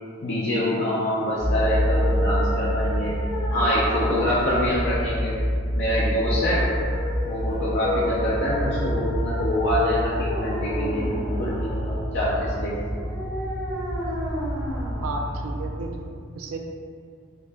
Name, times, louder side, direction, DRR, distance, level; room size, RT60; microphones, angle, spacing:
voice 1, 0.2-3.2 3.5-5.4 5.7-6.6 7.2-12.8, equal, 55° left, -7 dB, 0.5 m, -25 dB
sound 1, 1.1-16.1, left 1 dB, 5° right, 0.8 m, -33 dB
sound 2, 1.4-15.8, equal, 80° left, 1.0 m, -28 dB
voice 2, 15.0-16.6, right 3 dB, 75° right, 2 dB, 0.4 m, -33 dB
3.7 x 2.2 x 3.3 m, 2.2 s
head